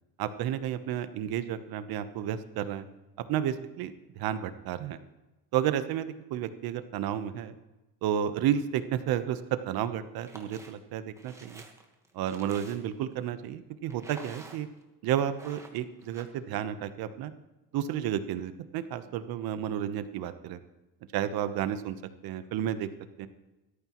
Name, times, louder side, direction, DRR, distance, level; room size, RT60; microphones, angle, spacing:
voice 1, 0.2-2.8 3.3-5.0 5.5-7.5 8.0-9.4 9.7-11.6 12.1-14.7 15.0-17.3 17.7-20.6 21.1-22.0 22.2-22.9 23.2-23.3, right 10 dB, 90° right, 11 dB, 1.1 m, -31 dB
sound 1, 10.1-10.7 11.2-13.0 13.9-14.8 15.2-16.2, right 2 dB, 10° right, 1.4 m, -49 dB
17.0 x 13.5 x 3.1 m, 1.1 s
cardioid pair, 160°, 35 cm